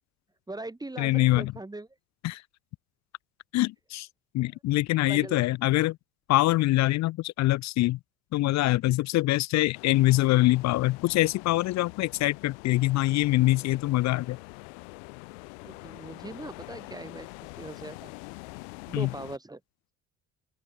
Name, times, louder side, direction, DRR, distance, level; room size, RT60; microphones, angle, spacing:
voice 1, 0.5-1.9 5.0-5.4 15.6-17.3 17.6-18.1 18.9-19.6, right 2 dB, 10° right, 3.5 m, -40 dB
voice 2, 1.0-1.5 2.2-2.4 3.5-4.1 4.3-6.0 6.3-8.0 8.3-14.4 18.9-19.1, left 18 dB, 55° left, 0.6 m, -24 dB
sound 1, 9.7-19.4, left 33 dB, 85° left, 2.2 m, -45 dB
open air
supercardioid pair, 80°, 33 cm